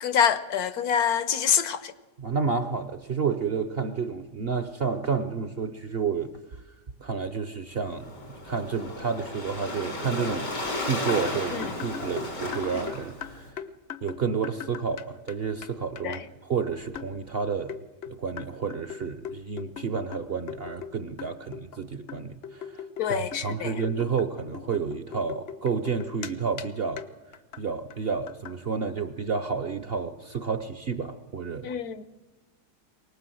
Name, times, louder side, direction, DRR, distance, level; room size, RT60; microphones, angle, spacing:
voice 1, 0.0-1.9 11.5-11.6 16.0-16.2 23.0-23.8 31.6-32.0, left 8 dB, 65° left, 1.4 m, -26 dB
voice 2, 2.2-6.3 7.0-8.1 8.4-10.5 10.8-13.5 14.0-17.7 18.1-22.8 23.1-27.0 27.6-31.7, right 5 dB, 45° right, 0.9 m, -30 dB
Waves surf, 7.8-13.5, left 1 dB, 90° left, 4.9 m, -34 dB
sound 1, 10.7-15.3 15.6-15.7 16.0-16.2 16.9-17.2 17.7-20.9 21.2-21.8 22.1-26.3 26.6-26.7 27.0-27.1 27.3-27.6 27.9-28.0 28.3-28.6, left 8 dB, 45° left, 0.9 m, -40 dB
24.0 x 19.0 x 7.8 m
omnidirectional pair, 1.8 m